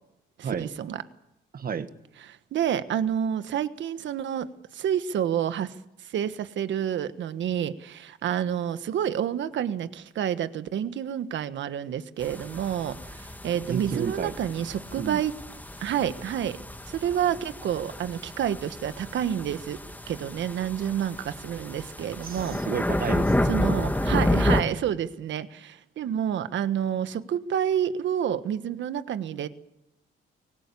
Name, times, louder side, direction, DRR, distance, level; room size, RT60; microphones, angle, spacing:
voice 1, 0.4-1.0 2.3-15.4 15.8-16.6 16.9-19.8 20.1-22.6 23.4-29.5, right 9 dB, 70° right, 12 dB, 1.4 m, -29 dB
voice 2, 1.5-1.9 13.7-14.3 15.0-15.2 22.2-23.5, right 6 dB, 50° right, 10 dB, 1.6 m, -32 dB
sound 1, 12.2-24.6, left 1 dB, 10° left, 2.3 m, -30 dB
24.0 x 19.0 x 8.6 m, 0.88 s
cardioid pair, 90°, 20 cm